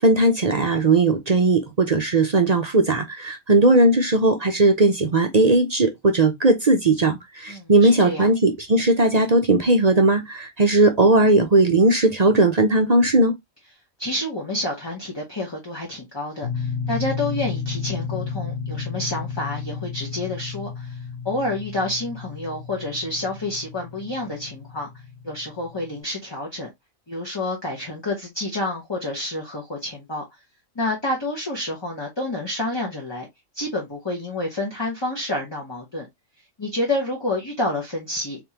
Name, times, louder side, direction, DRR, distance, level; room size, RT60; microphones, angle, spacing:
voice 1, 0.0-13.3, right 2 dB, 45° right, 0.6 m, -18 dB
voice 2, 7.5-8.3 14.0-21.0 21.2-24.9 25.2-26.7 27.1-30.2 30.7-33.3 33.5-36.1 36.6-38.4, left 1 dB, 20° left, 1.1 m, -29 dB
sound 1, 16.4-26.0, left 6 dB, 75° left, 1.5 m, -32 dB
4.1 x 3.5 x 2.9 m
omnidirectional pair, 1.4 m